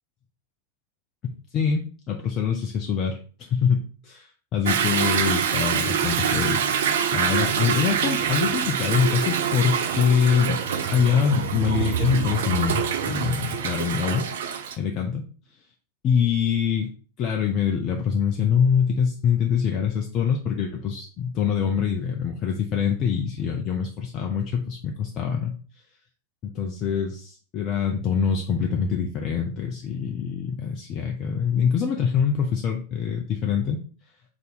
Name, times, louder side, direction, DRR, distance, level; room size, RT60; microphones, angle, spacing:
voice 1, 1.2-10.6 10.9-14.3 14.8-15.3 16.0-16.9 17.2-25.5 26.4-33.8, left 7 dB, 35° left, 2 dB, 0.4 m, -24 dB
Toilet flush / Drip / Trickle dribble, 4.7-14.8, right 7 dB, 60° right, 0.4 m, -25 dB
3.4 x 2.7 x 4.1 m, 0.41 s
figure-of-eight pair, 90°, 0 cm